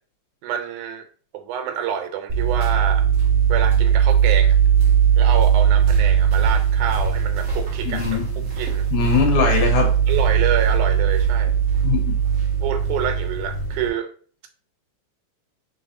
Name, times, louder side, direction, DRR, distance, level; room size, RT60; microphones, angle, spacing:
voice 1, 0.4-1.1 1.3-3.1 3.5-4.6 5.2-8.0 8.6-8.9 10.1-11.6 12.6-14.1, right 9 dB, 85° right, 7 dB, 2.2 m, -27 dB
sound 1, 2.3-13.9, right 8 dB, 45° right, 1.0 m, -19 dB
voice 2, 7.9-8.2 8.9-9.9 11.8-12.2, left 6 dB, 75° left, 3 dB, 2.3 m, -21 dB
4.4 x 4.0 x 2.6 m, 0.43 s
omnidirectional pair, 3.5 m